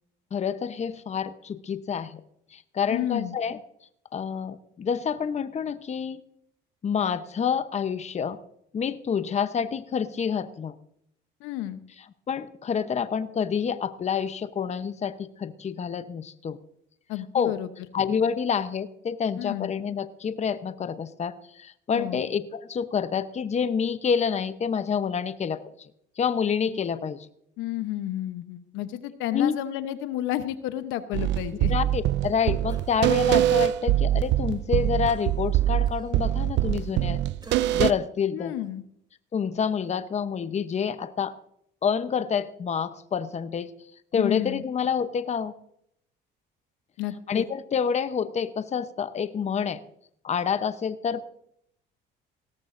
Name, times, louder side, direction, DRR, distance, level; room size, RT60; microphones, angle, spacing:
voice 1, 0.3-2.2 2.5-3.6 4.1-6.2 6.8-8.4 8.7-10.7 12.3-16.6 17.3-17.5 17.9-25.9 26.2-27.2 29.3-29.6 31.7-37.2 37.7-38.5 39.3-41.3 41.8-43.7 44.1-45.5 47.3-49.8 50.2-51.3, left 7 dB, 35° left, 12 dB, 0.8 m, -28 dB
voice 2, 2.9-3.4 11.4-11.8 17.1-17.7 19.4-19.7 21.9-22.2 27.6-31.7 38.3-38.8 44.1-44.6 47.0-47.4, left 13 dB, 80° left, 11 dB, 0.9 m, -31 dB
sound 1, 31.1-37.9, right 13 dB, 65° right, 0.5 m, -24 dB
Cough, 32.7-33.7 34.1-34.3 35.1-37.1 37.4-38.1 38.6-38.8, right 2 dB, 20° right, 3.0 m, -52 dB
17.5 x 13.5 x 2.6 m, 0.72 s
supercardioid pair, 90°, 20 cm